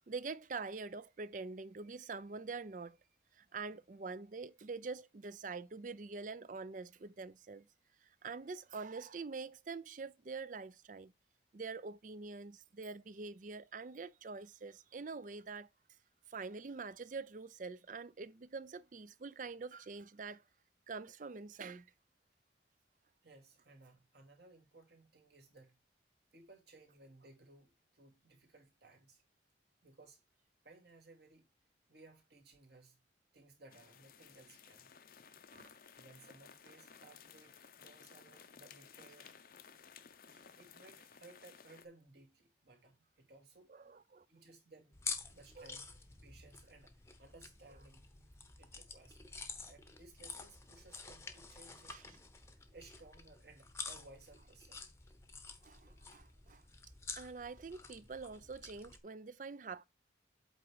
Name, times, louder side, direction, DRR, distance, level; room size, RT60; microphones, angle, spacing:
voice 1, 0.1-3.0 3.3-7.7 8.0-11.1 11.5-15.7 16.3-20.4 20.9-21.9 35.5-35.7 40.3-40.5 43.7-44.2 45.6-45.8 51.9-52.0 55.6-56.6 57.2-59.8, right 4 dB, 45° right, 0.5 m, -45 dB
voice 2, 23.2-25.8 26.3-29.2 29.8-30.2 30.6-31.5 31.9-33.0 33.3-34.9 35.2-35.5 36.0-39.3 40.6-43.7 44.3-45.0 45.3-45.9 46.2-46.9 47.2-48.1 48.6-49.2 49.7-54.8, right 2 dB, 60° right, 2.5 m, -60 dB
sound 1, 33.7-41.9, left 7 dB, 50° left, 0.6 m, -58 dB
sound 2, 44.9-59.0, left 4 dB, 15° left, 0.8 m, -49 dB
8.2 x 3.5 x 4.7 m
head